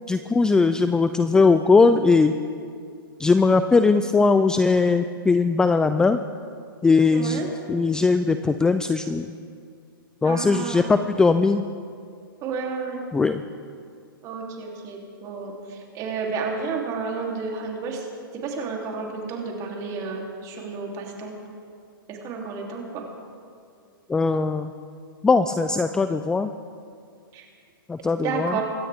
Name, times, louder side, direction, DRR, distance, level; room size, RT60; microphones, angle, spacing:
voice 1, 0.1-2.4 3.2-6.2 6.8-9.3 10.2-11.6 13.1-13.4 24.1-24.7 25.2-26.5 27.9-28.6, left 4 dB, 5° left, 10 dB, 0.3 m, -20 dB
voice 2, 7.1-7.5 10.2-10.8 12.4-13.0 14.2-18.0 18.4-21.3 22.1-23.0 27.3-27.4 28.1-28.6, right 5 dB, 30° right, 0 dB, 3.2 m, -31 dB
25.0 x 12.5 x 3.6 m, 2.3 s
hypercardioid pair, 135°, 12 cm